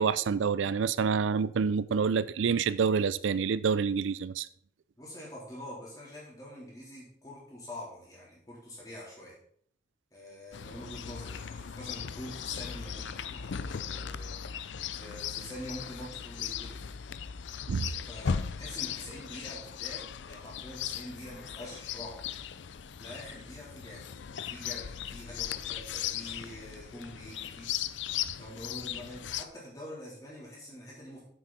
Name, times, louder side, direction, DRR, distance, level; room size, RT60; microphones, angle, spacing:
voice 1, 0.0-4.5 17.7-17.9, right 6 dB, 90° right, 0.4 m, -27 dB
voice 2, 4.9-9.3 10.1-14.4 14.9-16.8 18.0-22.3 23.0-24.0 24.4-27.7 28.3-31.2, equal, 20° left, 3.7 m, -45 dB
Chirp tweet, 10.5-29.5, left 8 dB, 75° left, 0.5 m, -38 dB
9.9 x 7.7 x 4.2 m
head